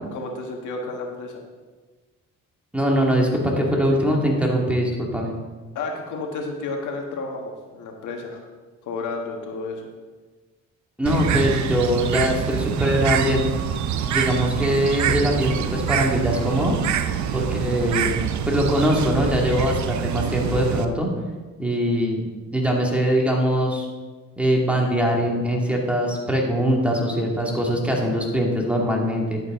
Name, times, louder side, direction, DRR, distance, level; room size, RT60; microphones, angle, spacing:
voice 1, 0.1-1.4 5.7-8.4 8.8-9.9, left 3 dB, 80° left, 2 dB, 1.7 m, -31 dB
voice 2, 2.7-5.3 11.0-13.4 14.0-16.8 17.3-18.2 18.4-21.1 21.6-22.2 22.5-23.9 24.4-29.4, equal, 5° right, -1 dB, 2.3 m, -22 dB
Bird, 11.1-20.9, right 8 dB, 70° right, 0.7 m, -25 dB
11.0 x 8.2 x 3.8 m, 1.3 s
cardioid pair, 90°, 30 cm